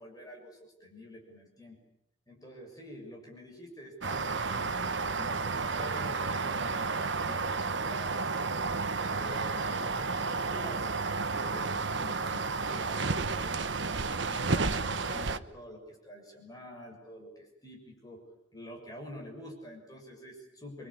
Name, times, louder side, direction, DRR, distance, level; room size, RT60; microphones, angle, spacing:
voice 1, 0.0-1.8 2.3-4.8 5.1-8.7 9.1-10.9 11.3-13.8 14.3-18.2 18.5-20.9, left 1 dB, 20° left, 0 dB, 6.8 m, -48 dB
sound 1, 4.0-15.4, right 4 dB, 60° right, 1.1 m, -31 dB
28.0 x 24.5 x 8.8 m, 0.74 s
head